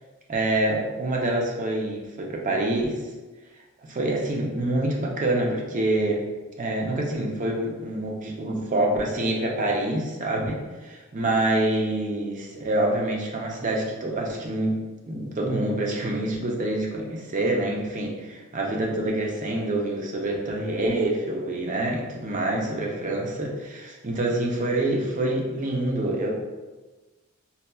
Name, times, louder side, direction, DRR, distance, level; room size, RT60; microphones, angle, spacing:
voice 1, 0.3-3.0 3.8-6.2 6.6-14.8 15.1-26.3, right 1 dB, 35° right, -1 dB, 0.5 m, -26 dB
4.1 x 2.3 x 2.2 m, 1.2 s
head